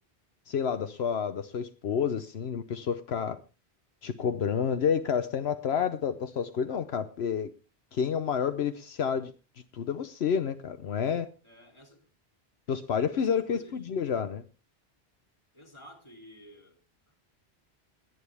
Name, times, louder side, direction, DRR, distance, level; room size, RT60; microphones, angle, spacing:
voice 1, 0.5-3.4 4.0-7.5 7.9-9.3 9.7-11.3 12.7-14.4, left 7 dB, 75° left, 1.1 m, -29 dB
voice 2, 11.4-12.1 13.1-13.8 15.5-16.8, equal, 25° left, 2.8 m, -52 dB
20.5 x 9.4 x 3.4 m
omnidirectional pair, 1.1 m